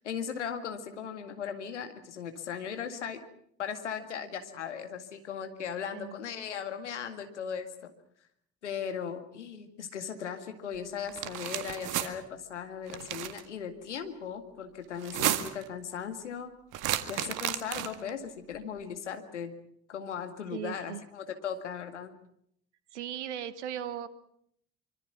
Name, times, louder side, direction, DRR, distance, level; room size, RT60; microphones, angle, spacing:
voice 1, 0.0-3.2 3.6-7.9 8.6-16.5 17.1-19.5 19.9-22.1, left 7 dB, 85° left, 7 dB, 2.1 m, -38 dB
sound 1, 11.1-12.1 12.9-13.4 15.0-15.7 16.7-18.1, right 12 dB, 65° right, 1.9 m, -32 dB
voice 2, 20.5-21.0 22.9-24.1, right 10 dB, 80° right, 15 dB, 1.3 m, -37 dB
25.5 x 25.0 x 6.0 m, 0.68 s
figure-of-eight pair, 45°, 35 cm